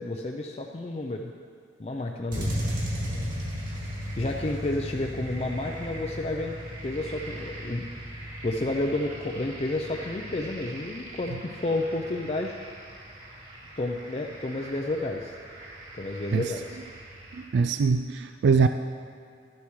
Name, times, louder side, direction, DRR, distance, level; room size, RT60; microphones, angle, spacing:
voice 1, 0.0-1.3 1.8-2.6 3.0-3.3 4.2-6.5 6.8-8.1 8.4-12.6 13.8-15.4 15.9-16.8, left 2 dB, 35° left, 1 dB, 0.4 m, -31 dB
sound 1, 2.3-17.4, equal, 45° right, 2.2 m, -37 dB
voice 2, 17.4-18.7, right 5 dB, 70° right, 8 dB, 0.3 m, -22 dB
13.0 x 11.5 x 3.1 m, 2.4 s
head